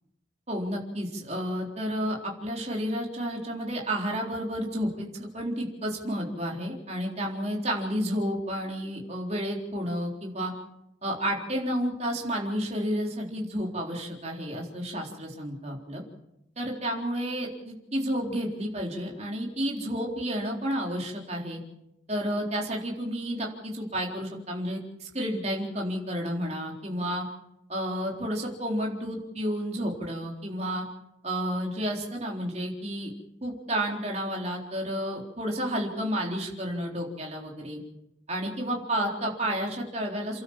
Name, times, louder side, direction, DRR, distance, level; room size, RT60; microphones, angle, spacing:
voice 1, 0.5-10.5 11.0-16.0 16.6-21.6 22.1-27.2 27.7-30.9 31.2-33.1 33.4-37.8 38.3-40.4, equal, 35° right, -1 dB, 3.9 m, -31 dB
29.0 x 12.5 x 7.4 m, 0.86 s
head